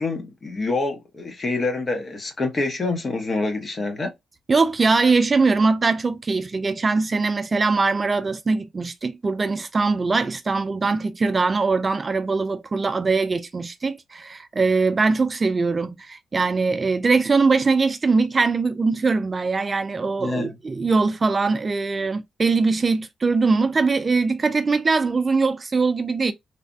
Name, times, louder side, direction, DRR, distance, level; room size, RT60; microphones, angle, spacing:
voice 1, 0.0-4.1 20.2-20.5, left 3 dB, 40° left, 0.9 m, -26 dB
voice 2, 4.5-26.3, right 4 dB, 35° right, 0.3 m, -21 dB
3.2 x 2.1 x 2.6 m
cardioid pair, 90°, 0 cm